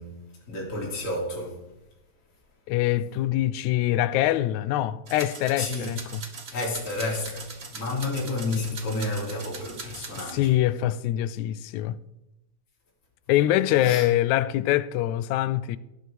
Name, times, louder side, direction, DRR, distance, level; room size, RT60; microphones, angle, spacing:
voice 1, 0.0-1.7 5.6-6.0 6.5-10.5 13.8-14.1, left 2 dB, 25° left, 3.4 m, -31 dB
voice 2, 2.7-6.2 10.3-12.0 13.3-15.8, left 13 dB, 80° left, 1.9 m, -24 dB
sound 1, 5.1-10.3, right 4 dB, 75° right, 0.5 m, -41 dB
17.5 x 6.3 x 5.1 m
omnidirectional pair, 3.5 m